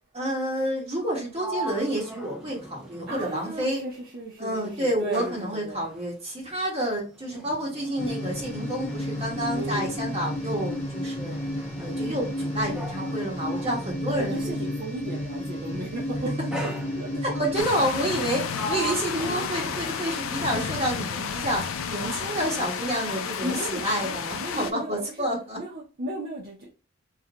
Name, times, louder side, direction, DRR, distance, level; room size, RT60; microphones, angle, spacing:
voice 1, 0.1-3.8 4.4-11.4 11.8-14.5 17.2-25.6, right 1 dB, 30° right, 1.2 m, -29 dB
Sliding door, 0.9-4.2 4.5-14.7 15.6-15.9 16.5-17.4 18.0-20.5, right 1 dB, 5° right, 0.4 m, -40 dB
voice 2, 3.1-5.8 9.5-9.9 11.8-12.2 13.7-16.3 16.6-17.2 17.7-17.8 23.4-25.2 25.6-26.7, right 1 dB, 50° right, 0.6 m, -36 dB
sound 1, 8.0-17.6, left 1 dB, 35° left, 0.7 m, -32 dB
sound 2, 17.5-24.7, left 6 dB, 80° left, 0.4 m, -31 dB
2.5 x 2.1 x 2.8 m
head